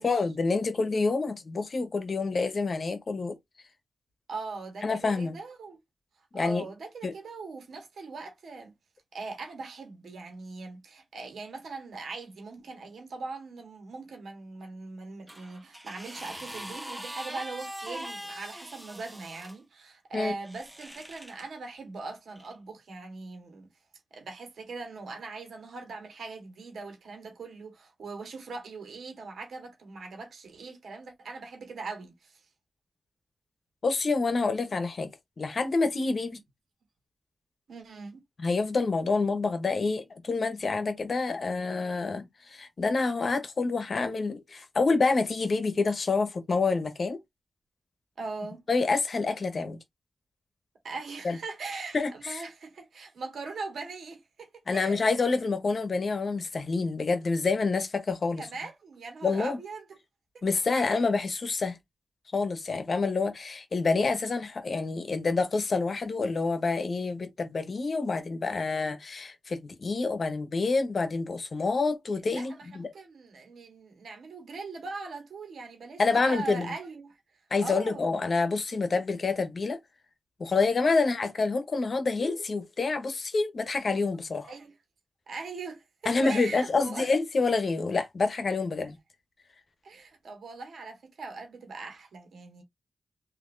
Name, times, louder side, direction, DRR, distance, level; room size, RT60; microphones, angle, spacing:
voice 1, 0.0-3.4 4.8-5.4 6.3-6.7 7.0-7.1 20.1-20.3 33.8-35.1 35.4-36.4 38.4-47.2 48.7-49.8 51.2-51.4 51.9-52.4 54.7-58.5 59.2-59.6 60.4-61.8 62.3-72.9 76.0-76.7 77.5-79.8 80.4-84.5 86.0-89.0, left 4 dB, 60° left, 1.0 m, -27 dB
voice 2, 4.3-5.8 6.3-8.7 9.1-23.7 24.1-32.4 36.3-36.4 37.7-38.2 48.2-48.6 50.8-55.1 58.4-59.8 60.7-61.0 72.3-77.2 77.6-78.1 80.9-81.1 84.4-84.7 85.3-87.1 89.8-92.6, right 3 dB, 90° right, 1.3 m, -41 dB
sound 1, 15.3-19.6 20.4-21.4 22.4-22.5, equal, 10° right, 1.0 m, -42 dB
3.4 x 2.8 x 2.6 m
cardioid pair, 60°, 0 cm